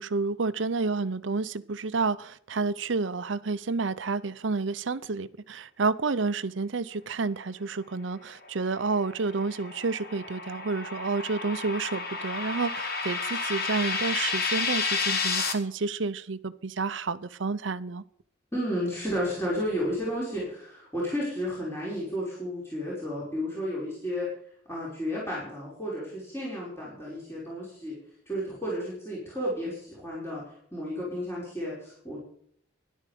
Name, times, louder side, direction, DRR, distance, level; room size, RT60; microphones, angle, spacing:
voice 1, 0.0-18.0, right 4 dB, 75° right, 0.7 m, -30 dB
sound 1, 8.7-15.5, left 4 dB, 50° left, 2.0 m, -31 dB
voice 2, 18.5-24.3 24.7-28.0 28.3-30.4 30.7-32.2, equal, 15° left, 5.0 m, -32 dB
13.0 x 11.0 x 5.1 m
head